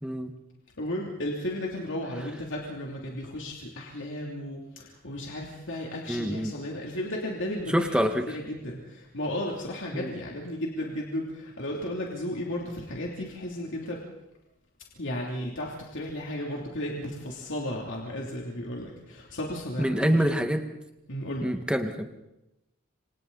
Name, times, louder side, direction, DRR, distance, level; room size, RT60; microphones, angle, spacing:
voice 1, 0.0-0.3 6.1-6.5 7.7-8.4 9.9-10.1 19.8-20.6 21.4-22.1, equal, 5° right, 5 dB, 1.7 m, -26 dB
voice 2, 0.8-14.0 15.0-20.2 21.1-21.5, left 1 dB, 60° left, -2 dB, 3.0 m, -34 dB
29.5 x 25.5 x 4.1 m, 0.92 s
head